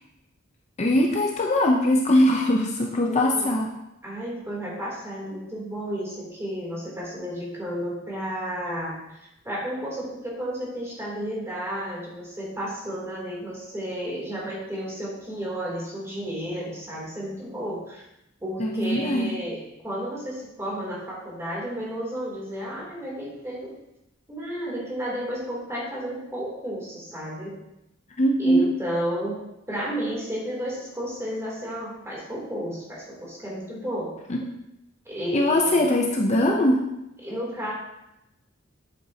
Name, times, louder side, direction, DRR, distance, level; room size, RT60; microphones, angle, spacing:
voice 1, 0.8-3.7 18.6-19.3 28.2-28.7 34.3-34.4 35.3-36.8, left 1 dB, 35° left, 1 dB, 0.6 m, -21 dB
voice 2, 3.0-3.5 4.0-9.2 9.4-18.0 18.4-23.7 24.3-27.5 28.4-29.4 29.7-34.1 35.0-35.9 37.2-37.7, equal, 15° right, -5 dB, 3.0 m, -32 dB
8.0 x 7.9 x 2.8 m, 0.88 s
head